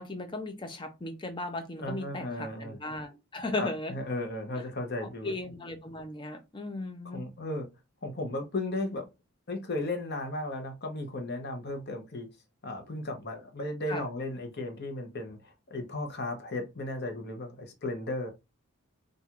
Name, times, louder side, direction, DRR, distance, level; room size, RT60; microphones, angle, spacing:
voice 1, 0.0-3.9 5.0-7.2 13.9-14.0, left 2 dB, 20° left, 0.5 m, -37 dB
voice 2, 1.8-2.8 3.6-5.3 7.0-7.7 8.0-9.1 9.5-12.3 12.6-18.3, left 2 dB, 45° left, 0.8 m, -35 dB
4.3 x 2.5 x 2.4 m
head